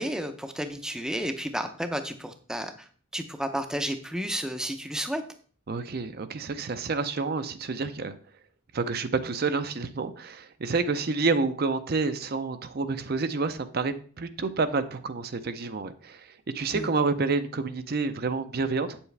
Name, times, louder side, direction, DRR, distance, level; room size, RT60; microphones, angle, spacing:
voice 1, 0.0-2.9 3.1-5.2 16.7-16.9, equal, 5° right, 7 dB, 0.6 m, -32 dB
voice 2, 5.7-8.1 8.7-19.0, right 4 dB, 45° right, 10 dB, 0.5 m, -29 dB
8.5 x 7.1 x 3.3 m, 0.44 s
head